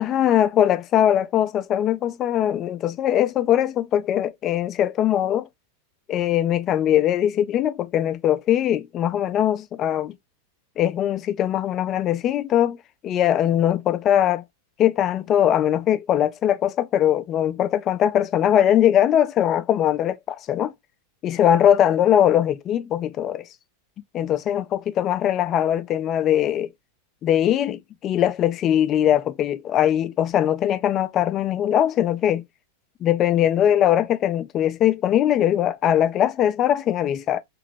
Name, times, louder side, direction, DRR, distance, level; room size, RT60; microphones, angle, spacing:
voice 1, 0.0-5.5 6.1-10.2 10.8-12.8 13.0-14.4 14.8-20.7 21.2-23.4 24.1-26.7 27.2-32.4 33.0-37.4, left 10 dB, 30° left, 0.3 m, -21 dB
3.0 x 2.9 x 2.4 m
figure-of-eight pair, 90°, 0 cm